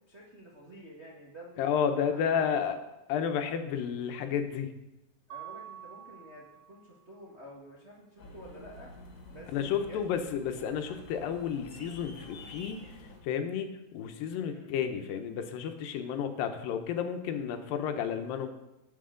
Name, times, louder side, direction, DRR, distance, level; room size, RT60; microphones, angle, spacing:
voice 1, 0.1-1.8 2.1-2.6 5.3-8.9 9.3-10.1 14.5-14.7, equal, 45° right, -5 dB, 0.8 m, -50 dB
voice 2, 1.6-2.8 3.1-4.7 9.5-12.9 13.2-18.5, left 7 dB, 80° left, 7 dB, 2.6 m, -31 dB
Mallet percussion, 5.3-7.1, right 11 dB, 85° right, 1.4 m, -47 dB
sound 1, 8.2-13.2, left 2 dB, 40° left, 2.1 m, -49 dB
18.0 x 6.0 x 3.8 m, 0.96 s
omnidirectional pair, 4.0 m